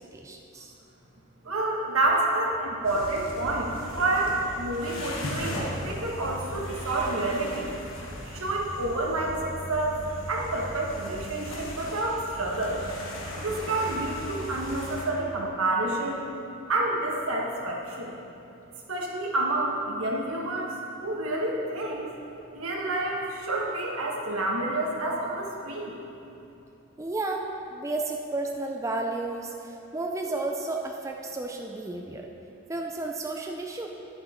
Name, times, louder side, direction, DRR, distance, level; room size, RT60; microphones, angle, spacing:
voice 1, 0.1-0.7 27.0-32.3 32.7-33.9, right 2 dB, 15° right, 2 dB, 0.4 m, -32 dB
voice 2, 1.4-7.7 8.2-10.0 10.3-12.8 13.3-16.2 16.7-18.2 18.9-20.7 21.0-22.1 22.5-26.0, right 2 dB, 80° right, -2 dB, 1.5 m, -28 dB
sound 1, 2.8-15.0, equal, 65° left, 1.4 m, -38 dB
10.5 x 7.8 x 4.3 m, 2.8 s
head